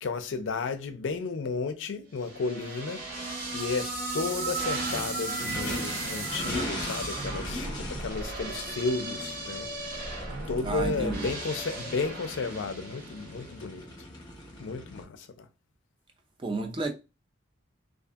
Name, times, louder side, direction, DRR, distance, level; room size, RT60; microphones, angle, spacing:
voice 1, 0.0-3.0 3.5-9.7 10.5-13.9 14.6-15.5, left 4 dB, 70° left, 0.4 m, -33 dB
sound 1, 2.2-13.5, right 3 dB, 45° right, 1.1 m, -35 dB
Race car auto racing / Idling / Accelerating revving vroom, 3.0-15.0, left 2 dB, 20° left, 0.8 m, -41 dB
voice 2, 10.6-11.3 16.4-16.9, right 3 dB, 25° right, 0.3 m, -31 dB
2.6 x 2.4 x 2.3 m
head